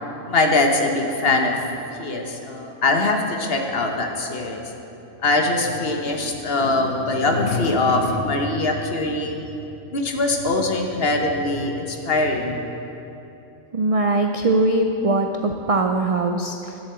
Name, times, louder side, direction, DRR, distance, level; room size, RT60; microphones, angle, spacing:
voice 1, 0.3-1.5 2.0-4.6 5.2-9.4 9.9-12.6, left 2 dB, 55° left, 3 dB, 1.2 m, -22 dB
voice 2, 13.7-16.7, right 2 dB, 55° right, 4 dB, 0.4 m, -21 dB
11.5 x 7.4 x 6.9 m, 2.9 s
omnidirectional pair, 1.3 m